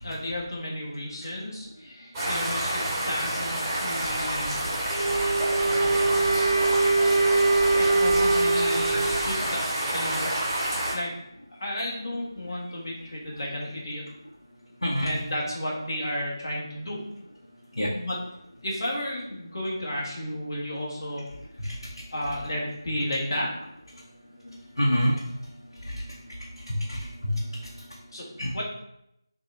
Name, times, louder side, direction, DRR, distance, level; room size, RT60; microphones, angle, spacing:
voice 1, 0.0-4.6 5.6-6.6 7.7-10.3 10.9-11.1 11.6-14.0 15.0-17.0 17.9-18.2 18.6-21.2 22.1-23.5 28.1-28.3 28.5-28.6, left 1 dB, 50° left, -3 dB, 1.3 m, -33 dB
sound 1, 2.1-10.9, right 1 dB, 5° right, 0.8 m, -29 dB
sound 2, 4.0-9.4, left 1 dB, 25° left, 0.8 m, -39 dB
Wind instrument woodwind instrument, 4.9-9.3, right 3 dB, 70° right, 0.6 m, -23 dB
voice 2, 14.8-15.1 17.7-17.9 21.6-21.8 23.9-24.0 24.4-25.2 25.7-28.0 28.4-28.6, equal, 85° left, -4 dB, 0.9 m, -29 dB
6.1 x 2.3 x 3.2 m, 0.80 s
figure-of-eight pair, 165°, 3 cm